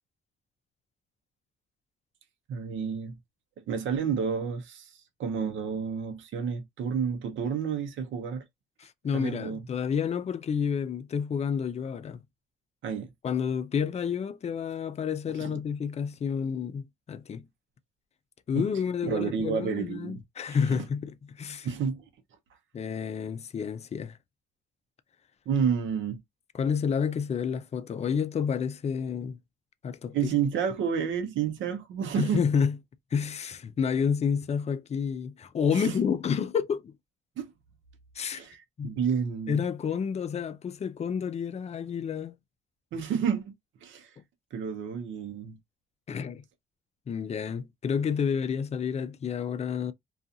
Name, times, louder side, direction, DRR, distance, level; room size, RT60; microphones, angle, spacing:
voice 1, 2.5-3.2 3.7-4.9 5.2-8.4 9.1-9.6 12.8-13.1 15.4-15.6 18.5-18.7 19.0-20.2 20.5-20.6 21.6-22.0 25.5-26.2 30.1-32.4 35.7-36.0 37.4-37.5 38.3-39.6 42.9-43.5 43.8-44.1 44.5-45.6, right 7 dB, 75° right, 0.7 m, -30 dB
voice 2, 8.8-12.2 13.2-17.5 18.5-21.7 22.7-24.2 26.5-29.4 29.8-30.3 32.2-32.8 33.1-36.9 38.2-38.4 38.8-38.9 39.5-42.4 46.1-46.4 47.1-49.9, left 6 dB, 35° left, 0.4 m, -30 dB
2.4 x 2.4 x 2.6 m
cardioid pair, 90°, 20 cm